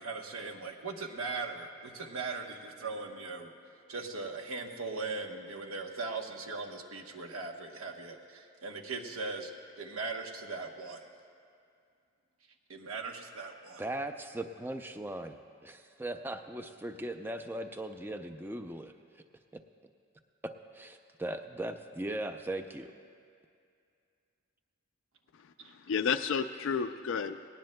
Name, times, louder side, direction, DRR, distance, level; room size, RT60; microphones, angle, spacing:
voice 1, 0.0-3.5 3.9-9.5 9.8-11.0 12.7-13.8 25.6-25.7, right 3 dB, 80° right, 3 dB, 1.0 m, -39 dB
voice 2, 13.8-19.2 19.5-19.6 20.4-22.9, right 1 dB, 10° right, 7 dB, 0.4 m, -39 dB
voice 3, 25.3-27.5, left 6 dB, 65° left, 9 dB, 0.3 m, -32 dB
19.0 x 18.0 x 2.2 m, 2.3 s
head